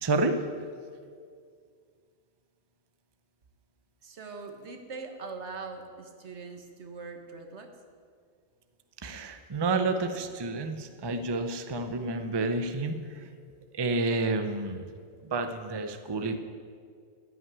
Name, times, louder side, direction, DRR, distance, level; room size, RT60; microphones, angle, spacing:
voice 1, 0.0-0.4 9.0-13.3 13.7-14.8 15.2-16.4, right 3 dB, 25° right, 8 dB, 0.6 m, -29 dB
voice 2, 4.0-7.7, right 4 dB, 80° right, 5 dB, 1.6 m, -42 dB
14.0 x 6.2 x 9.5 m, 2.1 s
omnidirectional pair, 1.2 m